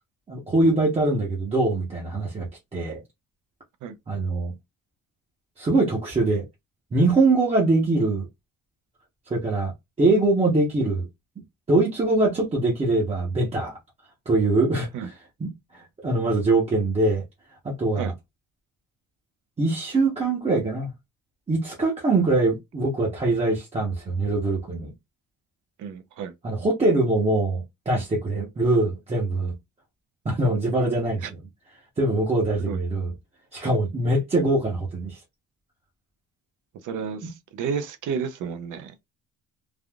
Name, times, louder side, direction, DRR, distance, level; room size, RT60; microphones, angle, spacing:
voice 1, 0.3-3.0 4.1-4.5 5.6-6.4 6.9-8.3 9.3-9.7 10.0-11.1 11.7-13.7 14.3-15.1 15.4-17.2 17.6-18.1 19.6-20.9 21.5-24.9 26.4-29.5 30.2-31.2 32.0-33.1 33.5-35.2, right 2 dB, 20° right, 0.8 m, -23 dB
voice 2, 25.8-26.3 31.2-31.3 32.6-32.8 36.8-38.9, right 6 dB, 60° right, 0.7 m, -31 dB
3.4 x 2.4 x 2.2 m
cardioid pair, 170°, 35 cm